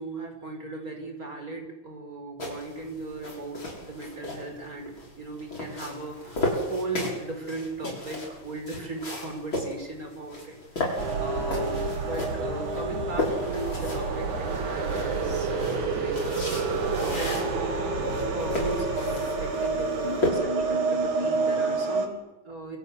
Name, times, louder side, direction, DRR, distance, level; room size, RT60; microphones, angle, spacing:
voice 1, 0.0-16.2 17.0-17.6 18.0-22.8, right 2 dB, 25° right, 3 dB, 5.8 m, -37 dB
sound 1, 2.4-20.3, left 1 dB, 35° left, 7.7 m, -35 dB
sound 2, 11.0-22.1, right 3 dB, 60° right, 4.0 m, -28 dB
28.5 x 25.0 x 8.3 m, 1.0 s
omnidirectional pair, 3.9 m